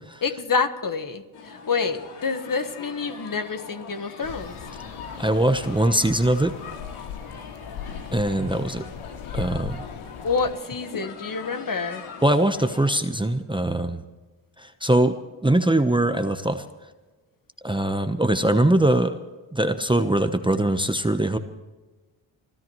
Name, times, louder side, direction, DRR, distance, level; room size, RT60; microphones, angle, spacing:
voice 1, 0.2-4.6 10.2-12.0, left 4 dB, 40° left, 8 dB, 1.4 m, -27 dB
sound 1, 1.3-13.0, left 5 dB, 85° left, 2.6 m, -42 dB
sound 2, 4.2-10.5, left 8 dB, 70° left, 1.1 m, -38 dB
voice 2, 5.2-6.5 8.1-8.8 9.3-9.8 12.2-14.0 14.6-15.2 15.4-16.6 17.6-19.2 19.5-21.4, right 1 dB, 10° right, 8 dB, 1.0 m, -22 dB
28.5 x 13.5 x 3.2 m, 1.2 s
cardioid pair, 65°, 49 cm